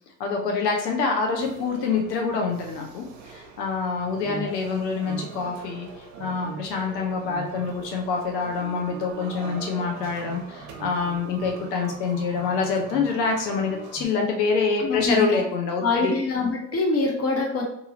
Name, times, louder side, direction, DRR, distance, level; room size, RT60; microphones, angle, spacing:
voice 1, 0.2-5.9 6.2-16.1, left 4 dB, 85° left, 2 dB, 0.7 m, -26 dB
sound 1, 1.3-14.1, right 5 dB, 65° right, 0.8 m, -41 dB
voice 2, 14.8-15.4 15.8-17.6, left 3 dB, 30° left, 0 dB, 0.9 m, -24 dB
2.7 x 2.5 x 2.7 m, 0.77 s
hypercardioid pair, 80°, 48 cm